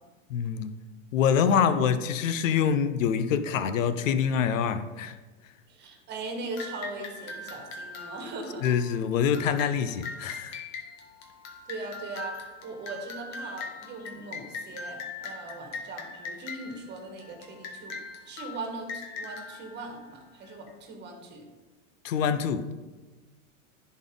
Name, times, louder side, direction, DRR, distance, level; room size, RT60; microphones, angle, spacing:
voice 1, 0.3-0.7 1.1-5.1 8.6-10.6 22.0-22.7, left 7 dB, 70° left, 11 dB, 0.8 m, -25 dB
voice 2, 5.7-8.7 11.7-12.4 12.6-18.0 18.2-21.5, right 2 dB, 25° right, 3 dB, 1.6 m, -39 dB
sound 1, 6.6-20.7, left 4 dB, 40° left, 1.4 m, -41 dB
10.5 x 4.3 x 3.9 m, 1.2 s
hypercardioid pair, 120°, 40 cm